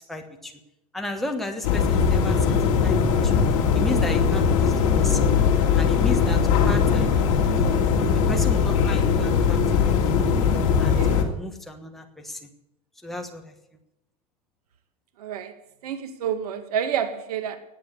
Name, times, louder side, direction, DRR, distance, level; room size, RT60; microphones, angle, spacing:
voice 1, 0.1-0.5 0.9-2.6 2.8-3.0 3.2-3.4 3.7-5.3 5.8-7.1 7.5-10.3 10.8-12.4 13.0-13.4, left 2 dB, ahead, 1.3 m, -34 dB
sound 1, 1.6-11.2, left 6 dB, 55° left, 2.9 m, -20 dB
voice 2, 10.9-11.2 15.2-15.5 15.8-17.6, right 8 dB, 85° right, 2.2 m, -29 dB
18.0 x 8.1 x 8.3 m
supercardioid pair, 170°, 19 cm